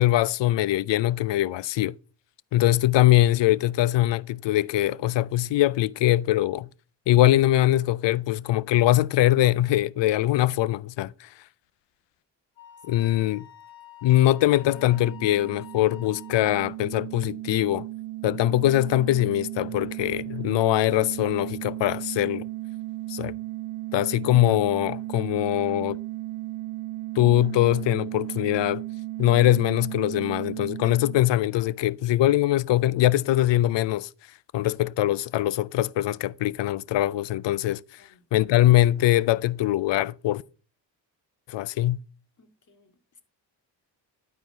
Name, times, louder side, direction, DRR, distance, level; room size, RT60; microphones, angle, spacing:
voice 1, 0.0-2.0 2.5-6.7 7.1-11.3 12.9-13.5 14.0-17.9 18.2-22.5 23.1-23.3 23.9-26.0 27.2-28.8 29.2-34.1 34.5-38.0 38.3-40.4 41.5-42.0, left 14 dB, 70° left, 0.6 m, -22 dB
Wind instrument woodwind instrument, 12.6-16.8, left 12 dB, 90° left, 2.3 m, -48 dB
sound 1, 14.4-31.9, right 17 dB, 70° right, 0.6 m, -36 dB
voice 2, 42.4-43.2, left 4 dB, 40° left, 2.1 m, -59 dB
12.0 x 4.4 x 5.5 m
cardioid pair, 70°, 45 cm